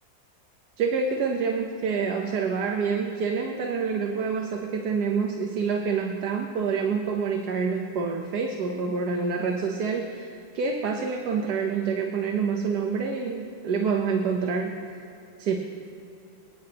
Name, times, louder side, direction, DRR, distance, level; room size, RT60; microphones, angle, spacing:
voice 1, 0.8-14.8 15.4-15.6, right 5 dB, 75° right, 3 dB, 1.4 m, -27 dB
26.5 x 9.6 x 2.9 m, 2.8 s
omnidirectional pair, 1.8 m